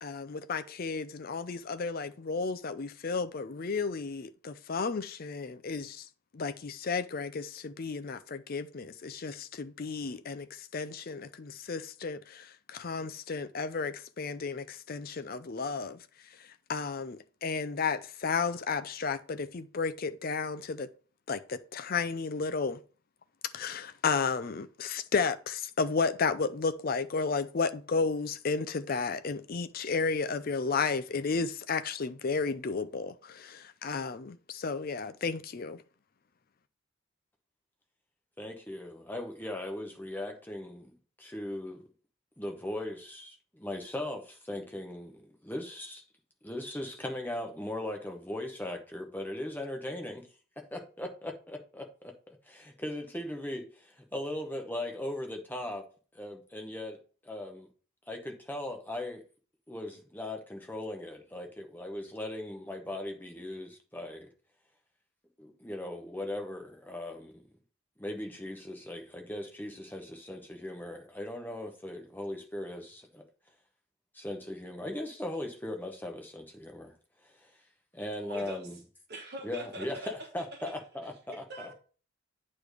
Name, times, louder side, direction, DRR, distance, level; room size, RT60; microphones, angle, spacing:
voice 1, 0.0-6.1 6.3-16.0 16.7-20.9 21.3-22.8 23.5-35.8, left 4 dB, 45° left, 0.5 m, -33 dB
voice 2, 38.4-41.9 42.4-46.0 46.4-50.2 50.6-55.8 56.1-57.7 58.1-59.2 59.7-64.3 65.4-67.4 68.0-73.2 74.1-76.9 77.4-77.5 77.9-78.8 79.4-81.7, left 1 dB, 10° left, 0.9 m, -39 dB
voice 3, 78.3-78.7 79.1-80.1 81.3-81.7, right 1 dB, 50° right, 1.3 m, -42 dB
8.7 x 3.2 x 5.0 m
head